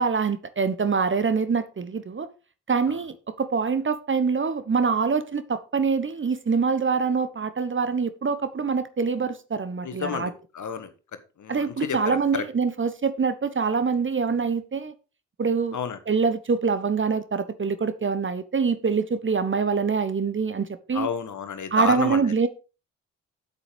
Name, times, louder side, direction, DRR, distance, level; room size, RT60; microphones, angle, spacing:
voice 1, 0.0-2.3 2.7-10.3 11.5-14.9 15.4-15.8 16.1-21.1 21.7-22.5, right 5 dB, 30° right, 1.2 m, -25 dB
voice 2, 9.8-10.9 11.4-12.4 15.7-16.0 20.9-22.2, left 7 dB, 50° left, 1.6 m, -31 dB
8.6 x 7.2 x 5.2 m
hypercardioid pair, 45°, 38 cm